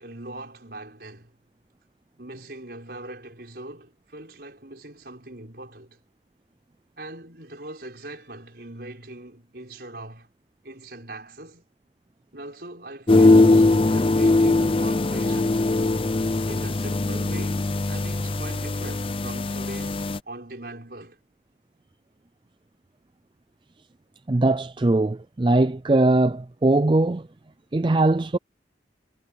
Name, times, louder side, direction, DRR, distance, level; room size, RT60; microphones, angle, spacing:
voice 1, 0.0-1.3 2.2-6.0 7.0-10.3 10.6-11.6 12.3-15.7 16.4-21.2, right 1 dB, 55° right, 5.6 m, -41 dB
sound 1, 13.1-20.2, left 2 dB, 30° left, 0.6 m, -20 dB
voice 2, 24.3-27.3 27.7-28.4, right 2 dB, 25° right, 0.4 m, -20 dB
head